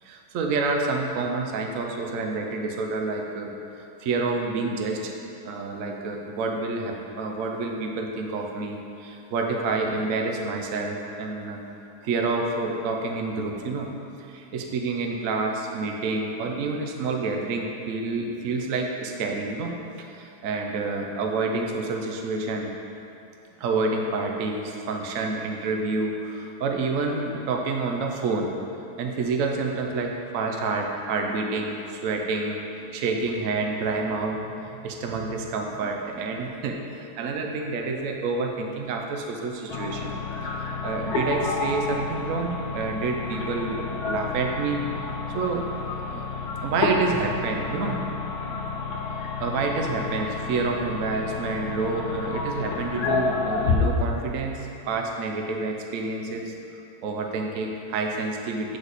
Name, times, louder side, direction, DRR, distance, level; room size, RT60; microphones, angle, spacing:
voice 1, 0.0-3.5 4.0-5.1 5.4-11.6 12.0-13.9 14.2-22.7 23.6-28.5 29.0-32.6 32.9-40.2 40.6-44.8 45.3-45.7 46.1-46.3 46.6-48.0 49.4-56.5 57.0-58.8, right 3 dB, 65° right, 2 dB, 1.0 m, -28 dB
sound 1, 39.7-53.8, left 4 dB, 75° left, 1.2 m, -30 dB
7.8 x 5.1 x 4.0 m, 2.8 s
omnidirectional pair, 1.7 m